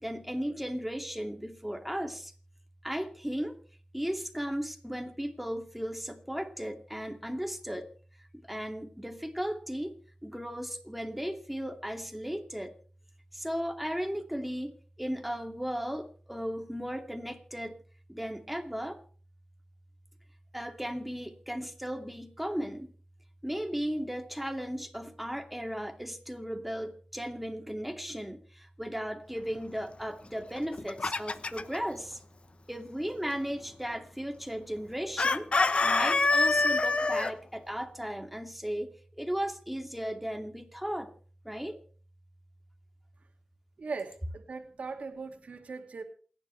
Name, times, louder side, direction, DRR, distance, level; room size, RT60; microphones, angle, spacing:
voice 1, 0.0-2.3 2.8-3.5 3.9-7.9 8.5-9.9 10.2-12.7 13.3-17.8 18.1-19.0 20.5-22.9 23.4-32.2 32.7-35.5 35.8-41.1 41.4-41.8, equal, 5° right, 4 dB, 2.6 m, -36 dB
Chicken rooster, 30.6-31.8 35.2-37.3, left 3 dB, 55° left, 1.0 m, -25 dB
voice 2, 43.8-46.0, right 4 dB, 75° right, 4 dB, 2.5 m, -39 dB
28.0 x 10.5 x 3.4 m, 0.42 s
cardioid pair, 60°, 2 cm